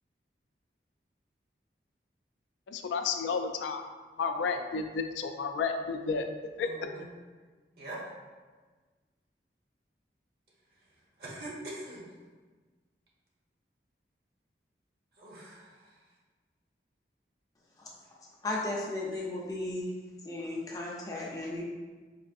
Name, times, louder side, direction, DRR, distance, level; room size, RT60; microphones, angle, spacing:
voice 1, 2.7-3.8 4.2-6.3 6.6-6.7, left 5 dB, 90° left, 6 dB, 0.3 m, -31 dB
voice 2, 6.6-7.0 7.8-8.0 11.2-12.0 15.2-15.9, right 1 dB, 60° right, -5 dB, 1.0 m, -43 dB
voice 3, 18.2-19.9 20.2-21.6, left 2 dB, 20° left, -4 dB, 0.4 m, -35 dB
4.2 x 2.4 x 2.5 m, 1.4 s
head